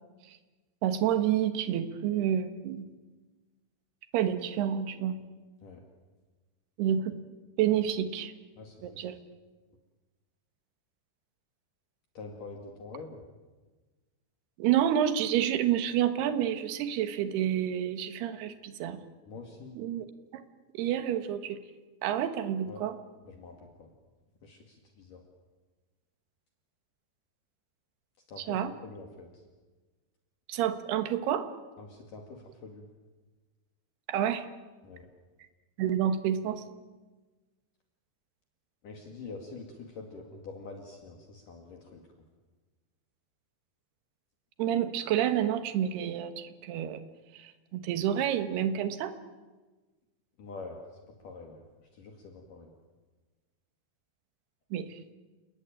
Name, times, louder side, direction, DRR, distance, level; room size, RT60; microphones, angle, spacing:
voice 1, 0.8-2.9 4.1-5.2 6.8-7.1 7.6-8.3 8.8-9.2 14.6-19.0 19.8-20.1 20.3-20.4 20.7-21.6 22.0-22.9 28.5-28.7 30.5-31.5 34.1-34.5 35.8-36.6 44.6-47.0 47.3-49.1 54.7-55.0, right 10 dB, 70° right, 9 dB, 3.3 m, -29 dB
voice 2, 8.6-9.1 12.2-13.2 19.3-19.8 22.7-22.9 23.2-23.9 24.4-25.2 28.3-29.4 31.8-32.9 34.8-35.1 38.8-42.0 50.4-51.7 51.9-52.7, left 3 dB, 55° left, 2 dB, 3.6 m, -46 dB
29.5 x 20.0 x 9.1 m, 1.3 s
omnidirectional pair, 4.9 m